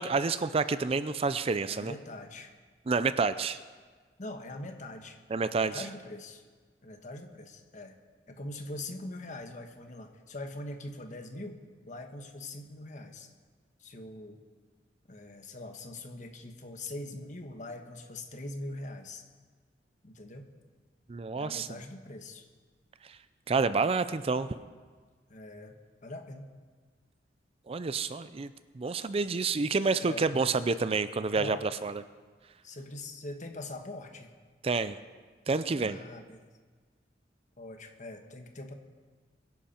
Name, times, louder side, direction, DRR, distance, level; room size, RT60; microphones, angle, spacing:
voice 1, 0.0-1.9 2.9-3.6 5.3-5.8 21.1-21.7 23.1-23.2 23.5-24.5 27.7-28.5 28.7-32.0 34.6-35.0 35.5-36.0, right 4 dB, 35° right, 13 dB, 0.4 m, -29 dB
voice 2, 1.7-2.5 4.2-5.2 5.5-6.4 6.8-8.0 8.3-11.6 11.9-13.3 13.8-14.4 15.1-19.3 20.0-20.5 21.4-22.5 25.3-25.7 26.0-26.5 30.0-30.3 31.3-31.7 32.6-34.3 35.7-36.4 37.6-38.7, left 2 dB, 45° left, 5 dB, 1.4 m, -42 dB
22.0 x 11.0 x 4.4 m, 1.5 s
head